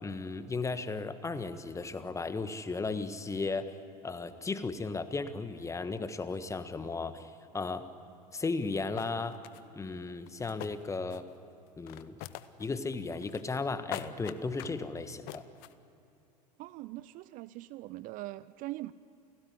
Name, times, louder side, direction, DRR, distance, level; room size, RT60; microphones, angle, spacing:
voice 1, 0.0-3.7 4.0-7.9 8.3-9.4 9.7-11.2 11.8-12.2 12.6-15.4, left 3 dB, 15° left, 11 dB, 1.5 m, -35 dB
sound 1, 8.6-8.7 9.0-9.6 10.3-11.4 11.7-12.7 12.9-13.6 13.9-14.8 15.3-15.7, left 16 dB, 50° left, 1.0 m, -43 dB
voice 2, 16.6-18.9, right 17 dB, 40° right, 17 dB, 0.5 m, -42 dB
29.0 x 17.5 x 9.7 m, 2.8 s
figure-of-eight pair, 80°, 21 cm